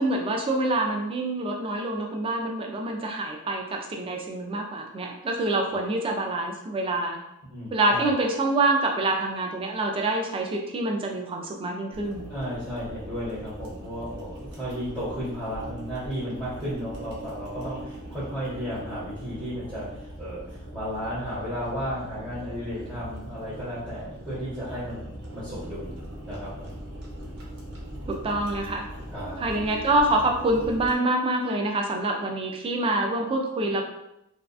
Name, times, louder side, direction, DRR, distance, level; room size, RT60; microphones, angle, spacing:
voice 1, 0.0-7.2 7.7-12.2 28.1-28.9 29.4-33.9, right 2 dB, 25° right, 2 dB, 0.3 m, -26 dB
voice 2, 7.5-8.1 12.3-25.0 25.3-26.0 26.2-26.7 29.1-29.4, equal, 5° right, -12 dB, 0.9 m, -34 dB
sound 1, 11.9-30.9, equal, 60° right, 0.7 m, -40 dB
2.6 x 2.2 x 2.3 m, 0.85 s
head